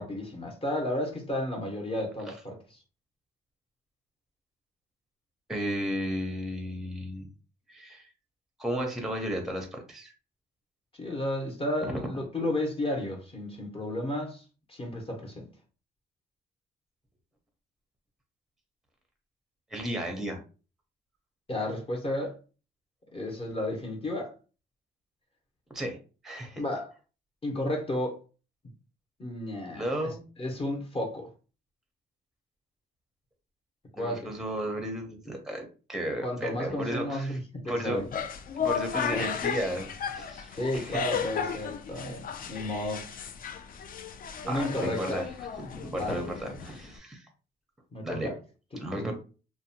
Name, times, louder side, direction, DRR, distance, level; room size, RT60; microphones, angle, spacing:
voice 1, 0.0-2.8 11.0-15.5 21.5-22.4 23.1-24.3 26.5-26.9 27.4-28.2 29.2-29.8 30.4-31.3 34.0-34.3 36.2-38.1 39.1-39.3 40.5-43.1 44.4-45.3 46.0-46.2 47.9-48.4 48.7-49.1, left 1 dB, 30° left, 0.8 m, -32 dB
voice 2, 5.5-7.3 7.7-8.1 8.6-10.1 11.8-11.9 19.7-20.4 25.7-26.0 26.2-26.6 29.7-30.3 33.9-38.0 38.6-41.0 44.4-45.2 45.7-47.3 48.0-48.3 48.7-49.1, equal, ahead, 0.6 m, -34 dB
sound 1, 37.9-47.0, left 7 dB, 45° left, 0.4 m, -35 dB
2.6 x 2.1 x 2.7 m
cardioid pair, 90°, 20 cm